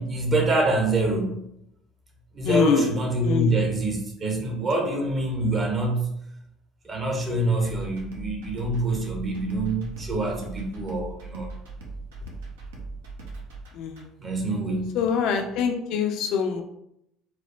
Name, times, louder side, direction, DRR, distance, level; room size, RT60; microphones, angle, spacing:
voice 1, 0.0-1.4 2.3-6.1 6.8-11.5 14.2-15.0, right 2 dB, 35° right, 2 dB, 0.8 m, -25 dB
voice 2, 2.4-2.9 3.2-3.5 13.7-14.0 14.9-16.6, left 6 dB, 60° left, 4 dB, 0.4 m, -24 dB
sound 1, 7.6-14.0, right 3 dB, 75° right, 0.6 m, -39 dB
4.3 x 2.1 x 2.4 m, 0.79 s
figure-of-eight pair, 60°, 0 cm